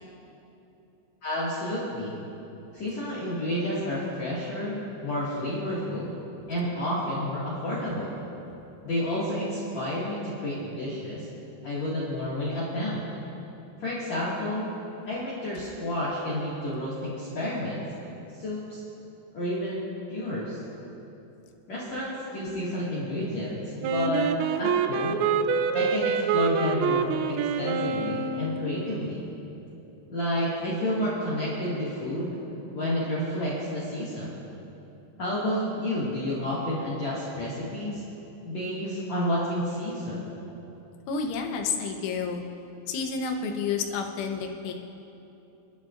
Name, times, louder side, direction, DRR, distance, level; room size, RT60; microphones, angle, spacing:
voice 1, 1.2-2.1 2.7-6.1 6.5-8.1 8.8-11.3 11.6-13.0 13.8-14.7 15.1-17.8 18.4-18.8 19.3-19.8 20.1-20.6 21.7-24.3 24.6-25.2 25.7-29.2 30.1-32.4 32.7-34.4 35.2-38.0 38.4-40.3, left 1 dB, 45° left, -7 dB, 2.7 m, -30 dB
Wind instrument woodwind instrument, 23.8-28.9, right 5 dB, 80° right, 2.8 m, -26 dB
voice 2, 41.1-42.4 42.9-44.7, left 5 dB, 85° left, 2 dB, 3.5 m, -30 dB
27.0 x 12.5 x 2.6 m, 2.9 s
omnidirectional pair, 5.4 m